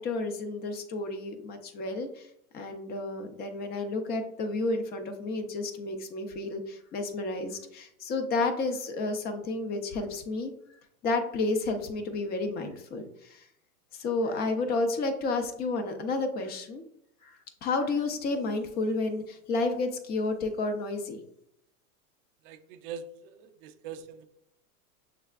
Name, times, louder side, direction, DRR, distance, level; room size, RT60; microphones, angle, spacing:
voice 1, 0.0-10.5 11.0-13.5 13.9-16.8 17.2-21.2, left 3 dB, 20° left, 7 dB, 0.5 m, -31 dB
voice 2, 22.4-24.3, right 6 dB, 35° right, 9 dB, 0.5 m, -43 dB
6.4 x 3.4 x 2.4 m, 0.75 s
hypercardioid pair, 125°, 45 cm